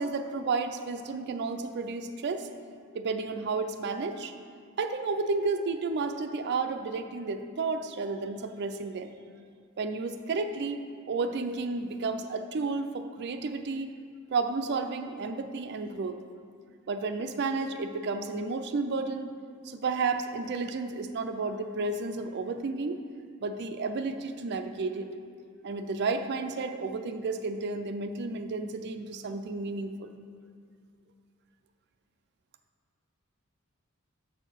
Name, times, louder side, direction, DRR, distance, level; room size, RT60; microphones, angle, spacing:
voice 1, 0.0-2.5 2.9-4.3 4.8-9.2 9.8-13.9 14.3-16.2 16.9-19.3 19.6-23.0 23.4-25.1 25.6-30.1, right 4 dB, 50° right, 8 dB, 0.4 m, -32 dB
6.9 x 4.5 x 5.7 m, 2.1 s
head